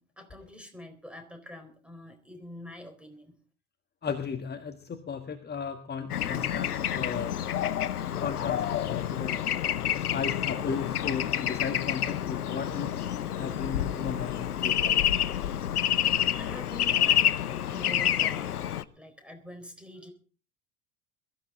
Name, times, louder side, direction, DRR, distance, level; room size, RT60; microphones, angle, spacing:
voice 1, 0.0-3.3 16.4-20.1, left 1 dB, ahead, 7 dB, 4.2 m, -46 dB
voice 2, 4.0-7.3 8.2-9.5 9.9-15.0, left 6 dB, 20° left, 7 dB, 1.6 m, -36 dB
Bird / Traffic noise roadway noise, 6.1-18.8, left 10 dB, 80° left, 0.8 m, -28 dB
22.0 x 14.0 x 3.7 m, 0.38 s
figure-of-eight pair, 70°, 44 cm